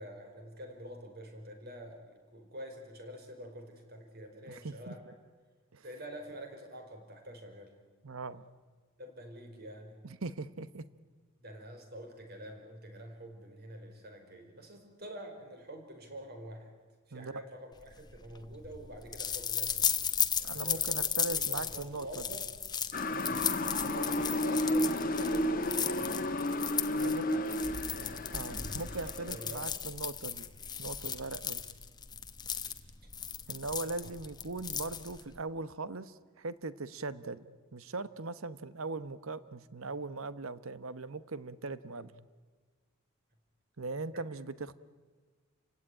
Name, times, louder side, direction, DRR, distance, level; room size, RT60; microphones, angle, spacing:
voice 1, 0.0-5.1 5.8-7.7 9.0-10.0 11.4-16.7 17.1-20.1 20.4-21.0 21.5-22.5 23.2-23.4 23.8-26.3 26.9-27.5 27.9-28.2 29.0-29.6 34.0-34.1 41.9-42.0, right 1 dB, 45° right, 4 dB, 5.1 m, -47 dB
voice 2, 4.5-4.9 5.7-5.8 8.0-8.4 10.0-10.8 17.1-17.4 20.4-22.2 23.8-23.9 26.9-27.3 28.3-30.5 30.8-31.6 33.5-42.1 43.8-44.8, right 3 dB, 70° right, 15 dB, 1.1 m, -40 dB
sound 1, 17.9-35.4, left 8 dB, 20° left, 1.1 m, -35 dB
Motor vehicle (road) / Siren, 22.9-29.7, left 1 dB, 40° left, 1.5 m, -32 dB
30.0 x 17.0 x 10.0 m, 1.5 s
head